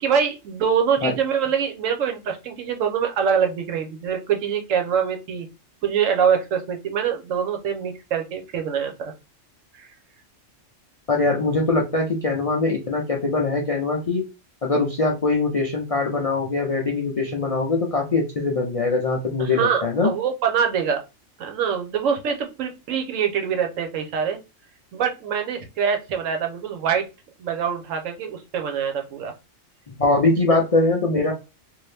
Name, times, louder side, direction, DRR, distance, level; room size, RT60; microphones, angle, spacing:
voice 1, 0.0-5.5 5.8-9.1 9.8-9.9 19.4-21.0 21.4-24.4 24.9-27.0 27.4-29.3, right 7 dB, 80° right, 5 dB, 1.1 m, -24 dB
voice 2, 11.1-14.2 14.6-20.1 30.0-31.3, left 3 dB, 60° left, 1 dB, 0.3 m, -22 dB
2.7 x 2.5 x 3.3 m, 0.28 s
omnidirectional pair, 1.3 m